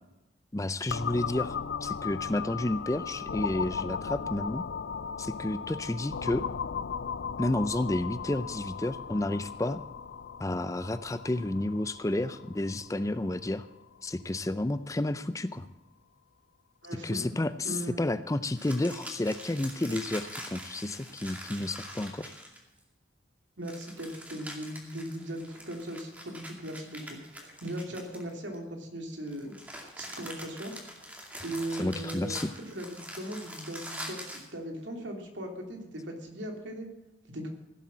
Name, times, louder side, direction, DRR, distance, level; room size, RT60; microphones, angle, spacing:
voice 1, 0.5-4.6 5.2-6.5 7.4-9.8 10.4-13.7 14.0-15.7 17.0-22.3 31.8-32.5, left 1 dB, 15° left, 13 dB, 0.5 m, -31 dB
sound 1, 0.9-14.5, left 6 dB, 75° left, 0.5 m, -37 dB
voice 2, 16.8-17.3 17.6-18.0 23.6-30.7 31.0-31.1 31.4-36.9 37.3-37.5, right 1 dB, 75° right, 3 dB, 2.8 m, -39 dB
sound 2, 18.5-22.8 23.6-28.6 29.3-34.5, equal, 10° right, 2.3 m, -44 dB
16.0 x 8.0 x 7.4 m, 0.99 s
head